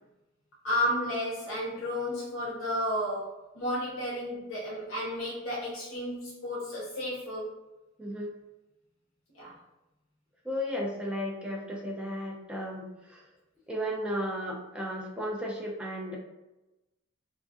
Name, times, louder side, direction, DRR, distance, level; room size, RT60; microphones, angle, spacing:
voice 1, 0.6-7.5 9.4-9.6, equal, 75° left, -7 dB, 0.6 m, -32 dB
voice 2, 8.0-8.3 10.4-13.2 13.7-16.2, equal, 5° right, -2 dB, 0.4 m, -34 dB
2.5 x 2.4 x 2.4 m, 0.99 s
head